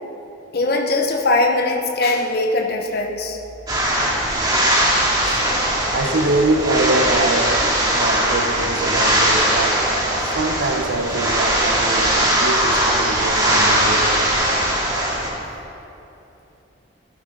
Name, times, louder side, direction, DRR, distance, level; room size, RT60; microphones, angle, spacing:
voice 1, 0.5-3.4, left 2 dB, 50° left, 2 dB, 0.9 m, -20 dB
sound 1, 3.7-15.3, right 1 dB, 20° right, 2.2 m, -19 dB
voice 2, 5.9-9.8 10.3-14.1, right 2 dB, 70° right, 4 dB, 1.0 m, -23 dB
16.5 x 12.5 x 4.0 m, 3.0 s
head